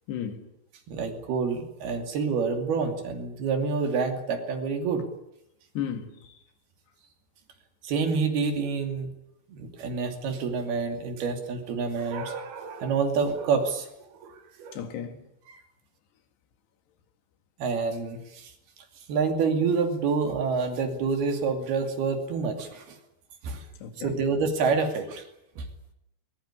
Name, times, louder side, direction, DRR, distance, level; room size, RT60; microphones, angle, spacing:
voice 1, 0.1-0.5 5.8-6.3 14.7-15.2 23.8-24.2, left 8 dB, 75° left, 4.1 m, -34 dB
voice 2, 0.9-5.1 7.8-9.1 9.5-14.8 15.5-15.6 17.6-18.5 19.1-23.0 23.4-23.7 24.0-25.3 25.6-25.7, right 5 dB, 65° right, 4.4 m, -28 dB
20.5 x 20.5 x 10.0 m
omnidirectional pair, 5.0 m